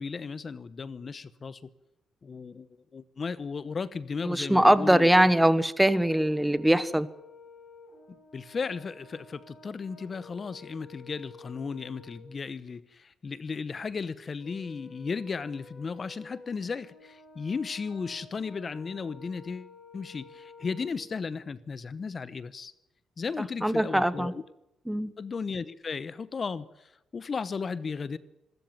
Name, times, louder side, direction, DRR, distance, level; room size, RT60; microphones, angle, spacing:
voice 1, 0.0-1.6 2.2-2.7 2.9-5.1 8.3-22.7 23.2-24.4 25.2-28.2, left 5 dB, 40° left, 1.0 m, -35 dB
voice 2, 4.3-7.1 23.6-24.3 24.9-25.1, right 1 dB, 5° right, 1.2 m, -22 dB
Brass instrument, 5.8-12.3 14.4-21.0, left 4 dB, 60° left, 7.9 m, -51 dB
26.0 x 13.5 x 9.1 m
cardioid pair, 90°, 0 cm